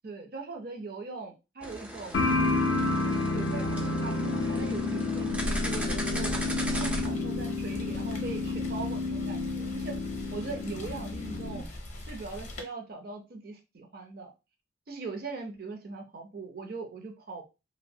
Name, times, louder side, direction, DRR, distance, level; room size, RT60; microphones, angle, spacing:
voice 1, 0.0-2.2 2.9-6.3 6.7-10.0 10.3-11.7 12.0-14.3 14.9-17.4, right 3 dB, 55° right, 3 dB, 0.6 m, -40 dB
sound 1, 1.6-7.1, equal, 5° right, 0.4 m, -36 dB
sound 2, 2.1-11.6, left 3 dB, 80° left, 0.4 m, -30 dB
Rain, 7.0-12.6, left 1 dB, 40° left, 0.6 m, -43 dB
2.7 x 2.1 x 2.6 m, 0.27 s
head